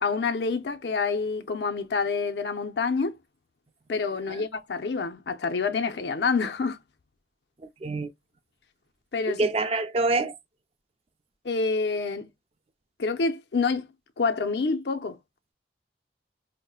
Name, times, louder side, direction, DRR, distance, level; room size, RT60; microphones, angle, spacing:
voice 1, 0.0-3.2 3.9-6.8 9.1-9.4 11.4-12.3 13.0-13.9 14.2-15.2, left 4 dB, 70° left, 0.5 m, -27 dB
voice 2, 7.6-8.1 9.3-10.4, right 3 dB, 35° right, 0.4 m, -26 dB
5.1 x 2.1 x 2.3 m
head